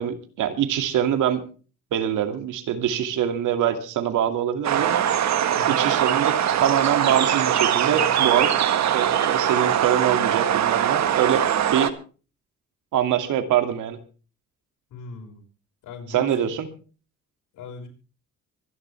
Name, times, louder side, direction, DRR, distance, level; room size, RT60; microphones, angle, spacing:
voice 1, 0.0-1.4 1.9-5.1 5.7-8.5 8.9-11.9 12.9-14.0 16.1-16.7, right 9 dB, 85° right, 8 dB, 2.5 m, -24 dB
sound 1, 4.6-11.9, right 10 dB, 65° right, 1.6 m, -22 dB
voice 2, 14.9-15.4 15.8-16.5 17.5-17.9, left 4 dB, 85° left, 3 dB, 5.9 m, -39 dB
24.5 x 11.0 x 3.5 m, 0.37 s
cardioid pair, 90°, 30 cm